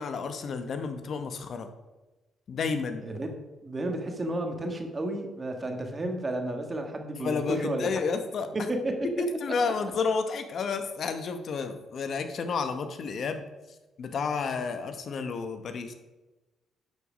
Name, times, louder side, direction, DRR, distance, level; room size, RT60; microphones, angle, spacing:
voice 1, 0.0-1.7 2.5-3.0 7.2-8.5 9.2-13.4 14.0-15.9, left 5 dB, 55° left, 8 dB, 0.9 m, -31 dB
voice 2, 3.6-8.2 8.5-9.6, right 1 dB, 30° right, 4 dB, 1.5 m, -32 dB
10.5 x 4.9 x 5.0 m, 1.1 s
cardioid pair, 90°, 0 cm